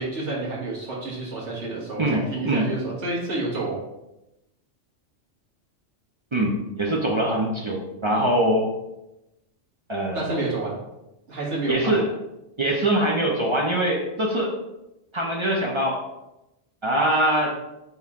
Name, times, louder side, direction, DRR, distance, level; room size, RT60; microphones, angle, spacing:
voice 1, 0.0-3.8 10.1-10.8 11.3-12.0, right 2 dB, 70° right, -5 dB, 1.8 m, -29 dB
voice 2, 2.0-2.7 6.3-8.7 9.9-10.2 11.7-12.1 12.6-14.6 15.1-16.0 16.8-17.6, right 1 dB, 40° right, -1 dB, 0.4 m, -23 dB
4.2 x 3.5 x 3.6 m, 0.93 s
omnidirectional pair, 1.2 m